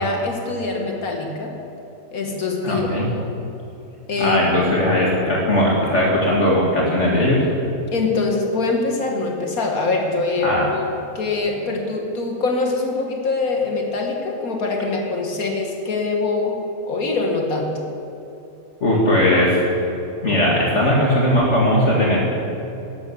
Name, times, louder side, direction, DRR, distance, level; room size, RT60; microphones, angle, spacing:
voice 1, 0.0-1.5 2.1-2.9 4.1-4.4 7.9-16.6 16.9-17.8, left 3 dB, 80° left, 1 dB, 2.0 m, -23 dB
voice 2, 2.6-3.1 4.2-7.5 10.4-10.7 18.8-19.6 20.2-22.2, left 1 dB, 55° left, -4 dB, 2.2 m, -18 dB
12.0 x 11.0 x 7.0 m, 2.9 s
omnidirectional pair, 1.5 m